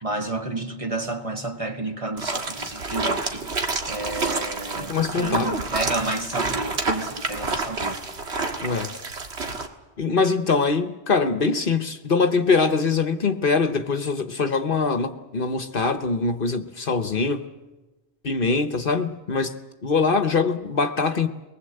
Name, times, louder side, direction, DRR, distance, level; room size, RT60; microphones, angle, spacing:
voice 1, 0.0-3.4 3.9-8.0, right 2 dB, 30° right, 1.7 m, -30 dB
sound 1, 2.2-9.7, right 3 dB, 70° right, 1.9 m, -29 dB
voice 2, 4.8-5.5 8.6-8.9 10.0-17.5 18.2-19.5 19.8-21.3, left 4 dB, 55° left, 1.2 m, -23 dB
23.0 x 20.0 x 7.8 m
omnidirectional pair, 1.2 m